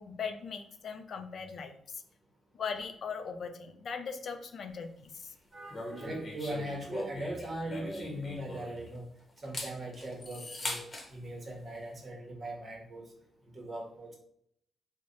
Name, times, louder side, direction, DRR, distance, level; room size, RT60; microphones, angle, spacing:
voice 1, 0.0-2.0 2.5-5.3, left 6 dB, 60° left, 7 dB, 0.4 m, -39 dB
voice 2, 5.5-9.1 9.4-10.8 11.1-13.1 13.5-14.2, right 1 dB, 40° right, 0 dB, 1.0 m, -40 dB
sound 1, 5.7-9.0 9.4-11.1, left 2 dB, 35° left, 0.9 m, -40 dB
3.1 x 2.1 x 3.8 m, 0.69 s
cardioid pair, 80°, 0 cm